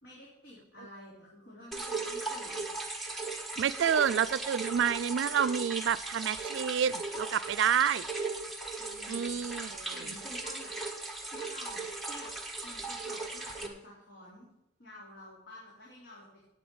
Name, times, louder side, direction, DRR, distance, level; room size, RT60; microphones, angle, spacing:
voice 1, 0.0-2.7 8.8-10.7 11.1-12.3 12.6-14.5 14.8-16.4, left 1 dB, 80° left, 4.0 m, -51 dB
sound 1, 1.7-13.7, right 3 dB, ahead, 1.3 m, -38 dB
voice 2, 3.6-8.1 9.1-9.9, right 8 dB, 90° right, 0.4 m, -29 dB
8.8 x 8.7 x 8.6 m
head